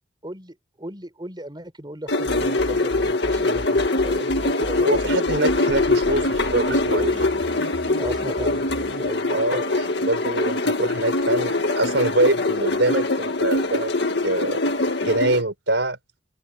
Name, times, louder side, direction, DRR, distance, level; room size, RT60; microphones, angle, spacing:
voice 1, 0.2-5.0 8.0-9.6, right 1 dB, 25° right, 4.5 m, -36 dB
sound 1, 2.1-15.4, left 2 dB, 65° left, 2.0 m, -23 dB
sound 2, 2.3-9.1, equal, 50° right, 2.6 m, -36 dB
voice 2, 4.8-7.3 9.3-13.9 14.2-14.6 15.0-16.0, right 2 dB, 75° right, 4.7 m, -24 dB
open air
head